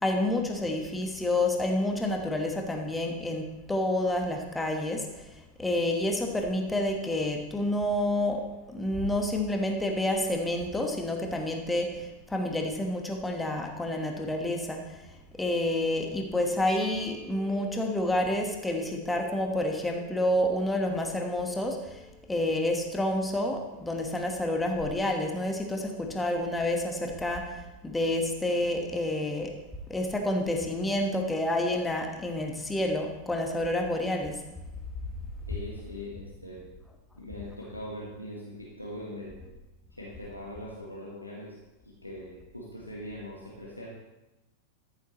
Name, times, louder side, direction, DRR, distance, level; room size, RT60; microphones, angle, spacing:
voice 1, 0.0-5.3 5.6-15.0 15.4-22.0 22.3-27.6 27.8-29.5 29.9-34.4, left 1 dB, 10° left, 2 dB, 1.3 m, -29 dB
sound 1, 16.7-24.2, right 1 dB, 10° right, 2.3 m, -50 dB
voice 2, 35.5-36.7 37.2-39.4 39.9-41.6 41.8-43.9, left 1 dB, 85° left, -4 dB, 1.4 m, -41 dB
13.5 x 7.2 x 3.1 m, 1.0 s
figure-of-eight pair, 90°, 0 cm